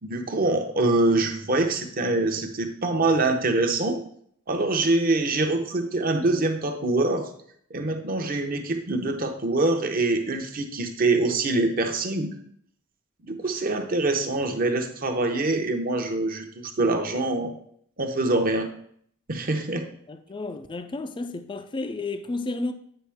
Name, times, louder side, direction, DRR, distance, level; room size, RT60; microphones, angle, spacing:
voice 1, 0.0-4.0 4.5-7.3 7.7-12.3 13.3-17.5 18.0-18.7 19.3-19.9, right 2 dB, 45° right, 0.8 m, -24 dB
voice 2, 20.1-22.7, left 2 dB, 25° left, 0.4 m, -32 dB
8.8 x 5.2 x 3.5 m
head